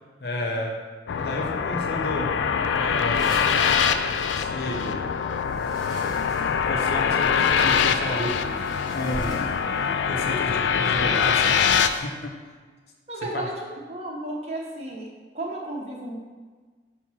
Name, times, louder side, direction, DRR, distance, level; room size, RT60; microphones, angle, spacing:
voice 1, 0.2-0.8 1.2-2.3 2.8-3.4 4.4-5.1 6.7-8.4 8.9-9.5 10.0-11.6 11.9-12.4 13.3-13.4, left 1 dB, 65° left, 1 dB, 0.8 m, -31 dB
sound 1, 1.1-11.9, left 7 dB, 90° left, 0.3 m, -23 dB
sound 2, 3.1-4.4 5.4-7.3 8.3-10.2 11.1-12.0, equal, 20° left, 1.5 m, -42 dB
voice 2, 13.1-13.6 13.9-15.1 15.3-16.2, right 1 dB, 35° right, -3 dB, 1.1 m, -33 dB
6.2 x 2.9 x 5.7 m, 1.4 s
head